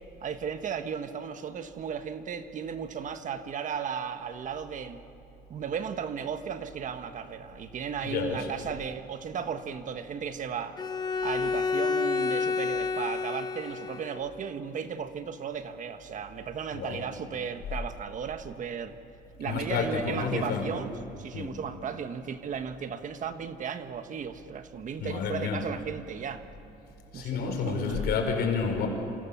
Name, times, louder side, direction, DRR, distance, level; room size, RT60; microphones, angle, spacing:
voice 1, 0.2-5.0 5.5-10.8 11.2-19.0 19.4-20.9 21.2-26.4 27.1-28.1, right 7 dB, 50° right, 9 dB, 1.5 m, -35 dB
voice 2, 8.0-8.5 16.7-17.0 19.4-20.7 21.3-21.5 25.0-25.7 27.1-28.9, left 5 dB, 75° left, 3 dB, 5.4 m, -30 dB
Bowed string instrument, 10.8-14.3, left 4 dB, 25° left, 1.1 m, -29 dB
28.0 x 27.5 x 7.3 m, 2.6 s
cardioid pair, 110°, 17 cm